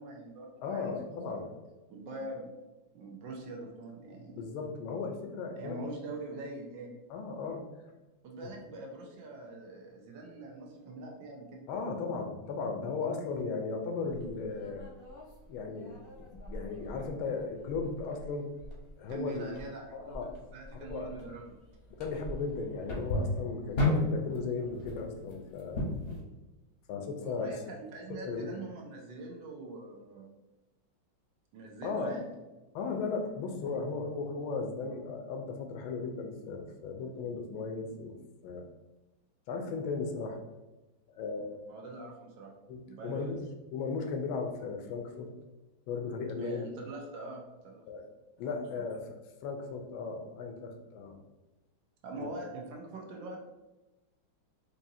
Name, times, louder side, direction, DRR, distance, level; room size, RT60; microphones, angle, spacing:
voice 1, 0.0-1.5 1.9-2.5 2.9-4.5 5.6-6.9 8.2-11.7 19.1-21.5 27.2-30.3 31.5-32.3 41.7-42.5 42.9-43.4 46.4-47.8 48.5-48.6 52.0-53.4, right 2 dB, 75° right, 0 dB, 1.3 m, -43 dB
voice 2, 0.6-1.5 4.4-5.8 7.1-7.7 11.7-14.8 15.5-18.5 19.0-19.5 19.9-20.3 20.7-21.1 22.0-25.8 26.9-27.5 28.2-28.5 31.8-32.1 32.7-38.1 38.4-38.6 39.5-40.4 41.1-41.6 42.7-43.4 43.7-45.3 45.9-46.7 47.9-48.1 48.4-49.0 49.4-51.2 52.2-52.3, left 4 dB, 85° left, 4 dB, 1.4 m, -36 dB
sound 1, 14.1-26.2, left 2 dB, 45° left, 0.8 m, -37 dB
4.8 x 2.7 x 2.6 m, 1.1 s
omnidirectional pair, 2.2 m